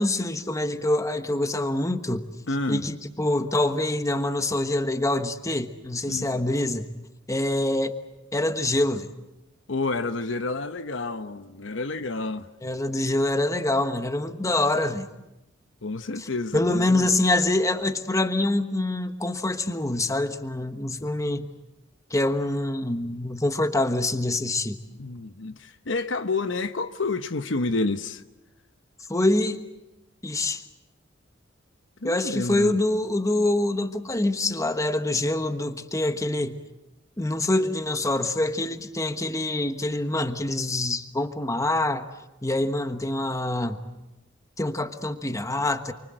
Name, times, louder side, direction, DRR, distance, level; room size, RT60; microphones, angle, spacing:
voice 1, 0.0-2.3 2.7-6.9 7.3-7.9 8.3-9.1 12.6-15.1 16.2-16.3 16.5-21.5 22.1-24.8 29.1-29.6 30.2-30.6 32.0-36.6 37.2-42.0 42.4-43.8 44.6-45.9, left 2 dB, 15° left, 1.3 m, -25 dB
voice 2, 2.5-2.9 6.1-6.3 9.7-12.5 15.8-17.1 25.0-28.2 32.0-32.7, left 3 dB, 70° left, 1.0 m, -29 dB
28.5 x 24.5 x 7.7 m
head